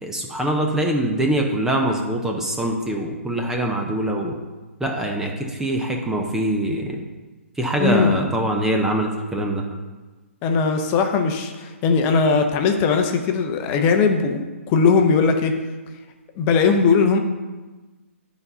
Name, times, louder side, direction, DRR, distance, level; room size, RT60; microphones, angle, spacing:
voice 1, 0.0-4.3 4.8-7.0 7.6-9.6, right 1 dB, 5° right, 1 dB, 0.6 m, -23 dB
voice 2, 7.8-8.3 10.4-14.4 14.7-15.6 16.4-17.2, left 5 dB, 25° left, 5 dB, 0.7 m, -19 dB
8.9 x 4.1 x 5.5 m, 1.3 s
figure-of-eight pair, 135°, 8 cm